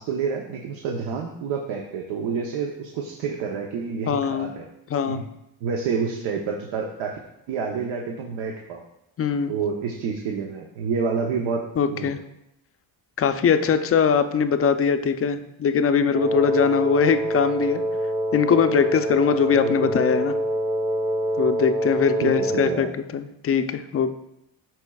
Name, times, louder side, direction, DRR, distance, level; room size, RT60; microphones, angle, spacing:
voice 1, 0.0-4.6 5.1-5.2 5.6-7.1 7.5-8.8 9.5-11.6 11.9-12.1 19.6-19.9 22.2-22.9, right 5 dB, 75° right, 1 dB, 0.9 m, -28 dB
voice 2, 4.1-4.5 4.9-5.2 9.2-9.5 11.8-12.2 13.2-17.8 18.3-20.4 21.4-22.9 23.1-24.1, left 6 dB, 30° left, 9 dB, 0.5 m, -21 dB
Wind instrument woodwind instrument, 16.1-22.9, equal, 5° right, 0.7 m, -25 dB
12.0 x 4.4 x 2.3 m, 0.84 s
cardioid pair, 100°, 46 cm